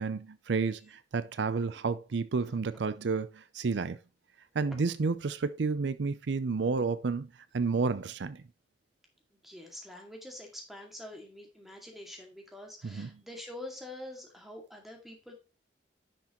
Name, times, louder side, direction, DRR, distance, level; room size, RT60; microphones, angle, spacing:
voice 1, 0.0-4.0 4.5-8.4 12.8-13.1, right 4 dB, 75° right, 0.5 m, -31 dB
voice 2, 9.3-15.3, left 1 dB, ahead, 2.2 m, -46 dB
10.0 x 6.0 x 3.0 m
head